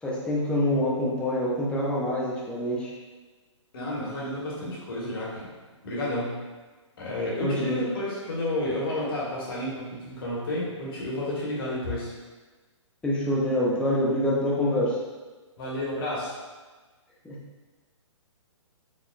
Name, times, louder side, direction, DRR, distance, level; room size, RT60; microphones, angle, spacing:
voice 1, 0.0-2.9 7.4-7.9 13.0-15.0 17.2-17.4, left 1 dB, 5° left, -6 dB, 0.6 m, -26 dB
voice 2, 3.7-5.5 5.8-6.4 7.0-12.1 15.6-16.3, left 1 dB, 45° left, -5 dB, 1.4 m, -31 dB
5.0 x 2.9 x 2.4 m, 1.3 s
figure-of-eight pair, 125°, 16 cm